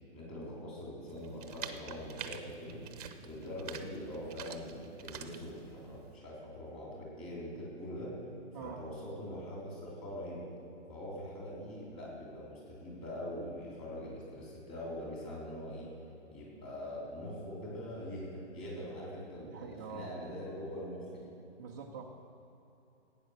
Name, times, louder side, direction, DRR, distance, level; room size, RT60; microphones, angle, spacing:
voice 1, 0.1-2.8 3.2-8.1 8.6-10.5 10.9-15.9 16.3-21.3, equal, 15° left, -5 dB, 3.7 m, -43 dB
sound 1, 1.1-6.2, right 8 dB, 35° right, 0.8 m, -47 dB
voice 2, 19.4-20.1 21.6-22.0, right 6 dB, 15° right, -2 dB, 0.5 m, -45 dB
15.5 x 9.0 x 6.6 m, 3.0 s
hypercardioid pair, 165°, 35 cm